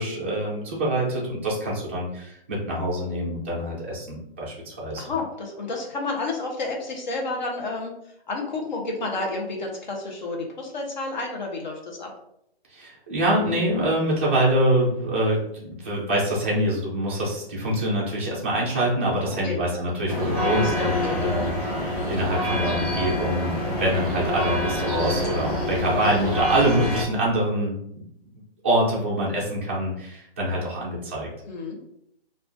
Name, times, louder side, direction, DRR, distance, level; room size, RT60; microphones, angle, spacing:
voice 1, 0.0-5.0 12.7-27.7 28.6-31.3, right 1 dB, 15° right, -6 dB, 0.5 m, -25 dB
voice 2, 5.0-7.9 8.3-12.1 19.4-19.6 20.2-21.4 31.5-31.8, left 3 dB, 45° left, 0 dB, 1.0 m, -31 dB
sound 1, 20.1-27.0, left 1 dB, 5° left, 1.0 m, -27 dB
4.4 x 2.5 x 2.6 m, 0.75 s
hypercardioid pair, 165°, 31 cm